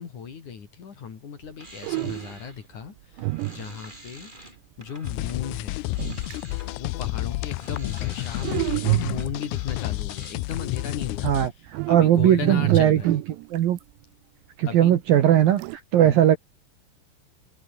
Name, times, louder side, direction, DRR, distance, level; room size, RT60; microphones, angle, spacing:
voice 1, 0.0-5.8 6.8-13.1 14.7-15.0 16.0-16.2, left 6 dB, 45° left, 3.7 m, -36 dB
sound 1, 1.4-1.5 1.8-2.5 3.2-4.1 6.0-6.5 8.4-9.5 11.7-13.8 15.3-15.8, right 23 dB, 85° right, 2.6 m, -28 dB
sound 2, 1.5-5.4 5.8-10.3, right 1 dB, 10° right, 7.8 m, -47 dB
sound 3, 5.0-11.5, left 20 dB, 85° left, 2.3 m, -30 dB
voice 2, 11.9-13.2 13.5-13.8 14.6-15.6 15.9-16.4, right 11 dB, 65° right, 2.6 m, -18 dB
open air
omnidirectional pair, 5.5 m